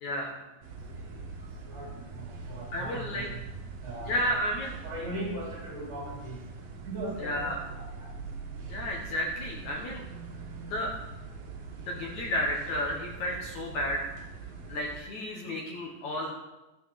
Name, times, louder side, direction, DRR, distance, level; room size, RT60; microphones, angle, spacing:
voice 1, 0.0-0.4 2.7-3.3 4.0-4.8 7.2-7.6 8.7-10.0 10.6-10.9 11.9-14.0 14.7-16.3, left 1 dB, 65° left, -1 dB, 1.9 m, -32 dB
sound 1, 0.6-15.0, right 4 dB, 60° right, 2.8 m, -43 dB
voice 2, 2.1-3.4 3.8-4.2 4.8-6.4 6.9-7.5 7.7-7.8, right 1 dB, 35° right, -5 dB, 4.8 m, -38 dB
14.5 x 7.8 x 5.9 m, 1.1 s
omnidirectional pair, 5.3 m